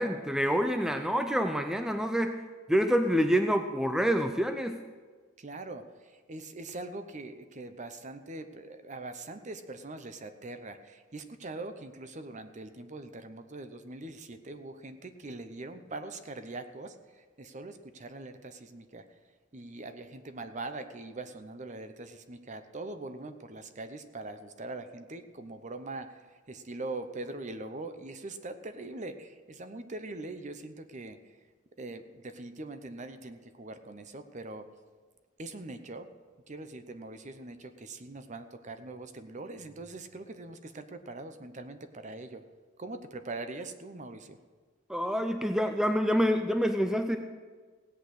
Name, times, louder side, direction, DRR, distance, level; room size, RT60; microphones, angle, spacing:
voice 1, 0.0-2.4 2.7-4.8 44.9-47.2, equal, 5° right, 6 dB, 0.5 m, -27 dB
voice 2, 5.4-19.0 19.5-31.4 31.8-34.7 35.4-36.1 36.5-42.4 42.8-44.4, right 2 dB, 35° right, 9 dB, 0.8 m, -42 dB
16.5 x 8.4 x 6.3 m, 1.5 s
head